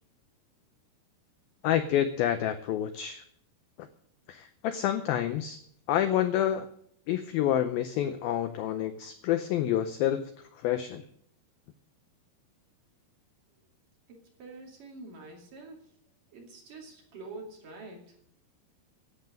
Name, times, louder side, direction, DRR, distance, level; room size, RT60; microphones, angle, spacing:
voice 1, 1.6-3.2 3.8-3.9 4.3-5.6 5.9-6.7 7.1-10.2 10.6-11.1, left 11 dB, 85° left, 9 dB, 2.1 m, -28 dB
voice 2, 14.1-15.8 16.3-18.1, right 3 dB, 50° right, 0 dB, 3.8 m, -46 dB
11.5 x 9.0 x 7.7 m, 0.65 s
omnidirectional pair, 5.1 m